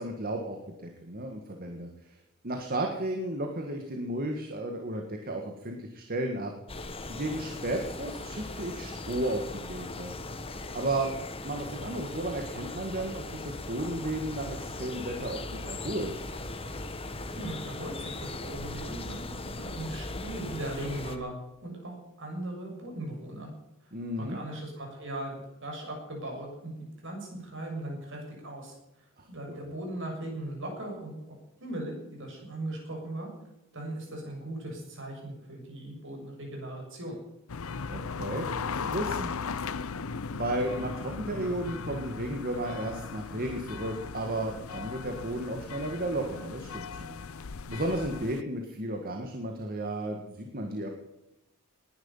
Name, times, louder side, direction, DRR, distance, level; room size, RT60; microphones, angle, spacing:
voice 1, 0.0-2.2 2.4-6.5 7.1-10.1 10.7-11.1 11.4-16.1 23.9-24.4 29.2-29.6 37.9-38.5 38.8-39.3 40.3-47.2 47.7-50.9, right 1 dB, 45° right, 3 dB, 1.9 m, -33 dB
sound 1, 6.7-21.2, left 2 dB, 25° left, 1.3 m, -39 dB
voice 2, 17.3-21.3 21.6-23.5 23.8-25.3 25.6-26.7 27.0-31.2 31.6-33.3 33.7-37.2, right 1 dB, 60° right, 1 dB, 6.8 m, -38 dB
sound 2, 37.5-48.4, left 5 dB, 75° left, 0.7 m, -37 dB
20.0 x 11.0 x 5.7 m, 0.93 s
head